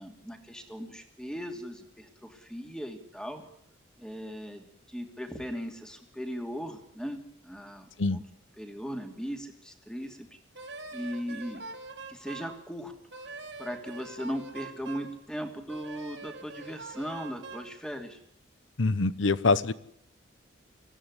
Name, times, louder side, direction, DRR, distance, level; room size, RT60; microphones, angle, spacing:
voice 1, 0.0-3.4 4.0-7.2 7.4-8.2 8.6-10.3 10.9-11.6 12.1-12.9 13.6-18.2, equal, 5° left, 5 dB, 2.8 m, -38 dB
Wind instrument woodwind instrument, 10.6-12.6 13.1-15.1 15.7-17.7, right 3 dB, 65° right, 3.5 m, -43 dB
voice 2, 18.8-19.7, left 3 dB, 75° left, 18 dB, 0.9 m, -24 dB
24.5 x 16.5 x 9.9 m, 0.69 s
head